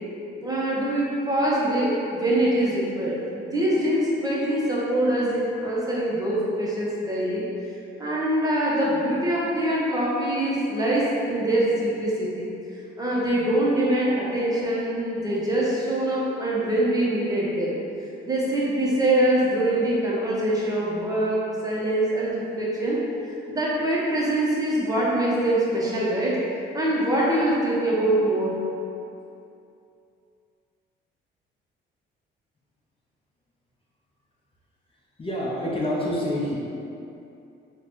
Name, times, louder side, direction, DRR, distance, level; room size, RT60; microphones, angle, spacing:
voice 1, 0.4-7.4 8.0-12.5 13.0-17.7 18.2-23.0 23.3-26.4 26.7-28.6, right 1 dB, 20° right, -6 dB, 0.7 m, -24 dB
voice 2, 35.2-36.6, left 1 dB, 30° left, -5 dB, 0.5 m, -27 dB
3.8 x 2.2 x 2.9 m, 2.7 s
cardioid pair, 90°, 20 cm